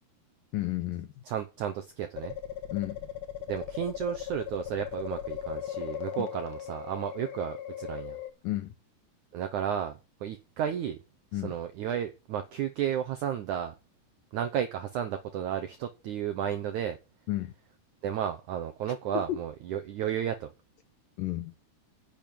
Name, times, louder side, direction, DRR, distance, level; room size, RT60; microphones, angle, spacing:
voice 1, 0.5-1.1 2.7-3.0 6.2-6.3 8.4-8.7 11.3-11.6 17.3-17.5 19.1-19.4 21.2-21.5, left 15 dB, 80° left, 2.0 m, -32 dB
voice 2, 1.3-2.4 3.5-8.2 9.3-11.0 11.3-13.7 14.3-17.0 18.0-20.5, right 9 dB, 80° right, 1.7 m, -33 dB
sound 1, 2.2-8.3, left 10 dB, 60° left, 1.8 m, -38 dB
10.5 x 7.0 x 9.2 m
omnidirectional pair, 4.8 m